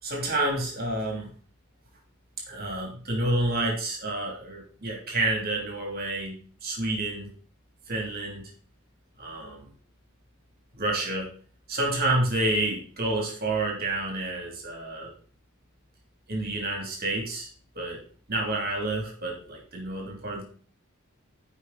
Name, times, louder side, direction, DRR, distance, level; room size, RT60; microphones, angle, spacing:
voice 1, 0.0-1.3 2.5-7.3 7.9-8.5 9.2-9.7 10.7-11.3 11.7-15.1 16.3-17.5 17.7-18.0 18.3-20.4, right 2 dB, 45° right, 1 dB, 3.2 m, -29 dB
14.0 x 5.6 x 4.2 m, 0.43 s
head